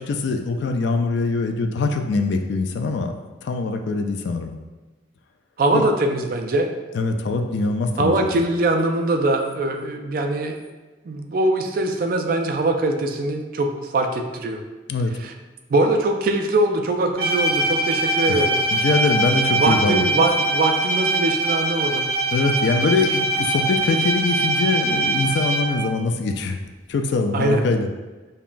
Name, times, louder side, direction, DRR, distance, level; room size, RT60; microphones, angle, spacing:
voice 1, 0.0-3.1 3.4-4.5 5.7-5.8 6.9-8.3 14.9-15.2 18.3-18.5 18.7-20.3 22.3-26.6 26.9-27.9, left 3 dB, 65° left, 5 dB, 0.3 m, -23 dB
voice 2, 5.6-6.7 8.0-10.6 11.1-14.6 15.2-15.3 15.7-18.6 19.5-22.1 27.3-27.6, right 2 dB, 50° right, 4 dB, 0.3 m, -22 dB
Bowed string instrument, 17.2-25.9, right 2 dB, 35° right, 0.9 m, -22 dB
5.4 x 2.3 x 2.5 m, 1.2 s
head